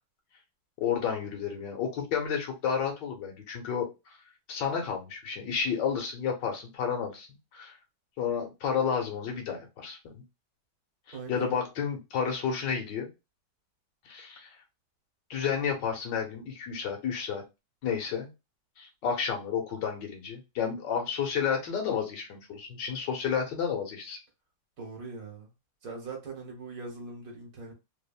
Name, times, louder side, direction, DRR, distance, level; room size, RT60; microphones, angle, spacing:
voice 1, 0.8-3.9 4.5-7.3 7.5-7.7 8.2-10.2 11.1-13.1 14.0-14.5 15.3-17.4 17.8-18.3 18.8-24.2, left 7 dB, 80° left, 1.6 m, -31 dB
voice 2, 11.1-11.5 24.8-25.5 25.8-27.7, right 3 dB, 55° right, 1.4 m, -41 dB
3.5 x 2.1 x 2.3 m
omnidirectional pair, 1.9 m